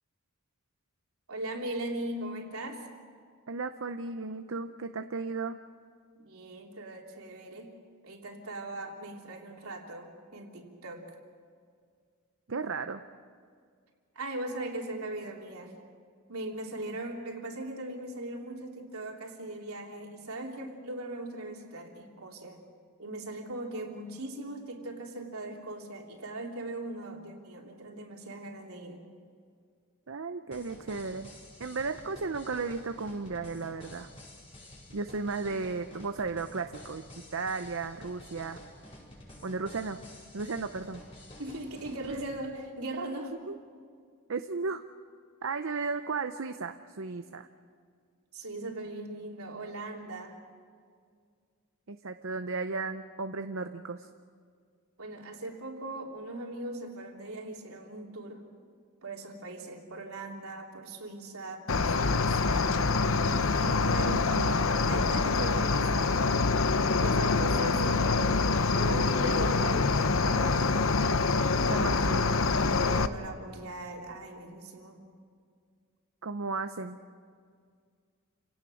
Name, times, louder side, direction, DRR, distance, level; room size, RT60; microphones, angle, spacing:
voice 1, 1.3-2.9 6.1-7.7 8.0-11.1 14.1-15.8 16.3-22.6 23.0-29.0 41.4-43.3 48.3-50.4 55.0-58.4 59.0-62.7 63.3-64.1 64.9-66.4 67.0-70.7 72.9-75.0, right 1 dB, 80° right, 0 dB, 3.3 m, -39 dB
voice 2, 3.5-5.6 12.5-13.0 30.1-31.3 31.6-34.1 34.9-37.0 37.3-38.6 39.4-40.0 40.3-41.0 42.1-42.2 43.5-43.6 44.3-44.8 45.4-47.5 51.9-54.1 63.6-64.5 71.7-72.3 76.2-77.0, right 4 dB, 65° right, 8 dB, 0.7 m, -35 dB
sound 1, 30.5-42.2, left 1 dB, 25° left, 5.2 m, -50 dB
Cricket, 61.7-73.1, left 3 dB, 65° left, 0.8 m, -25 dB
29.0 x 17.5 x 6.4 m, 2.1 s
head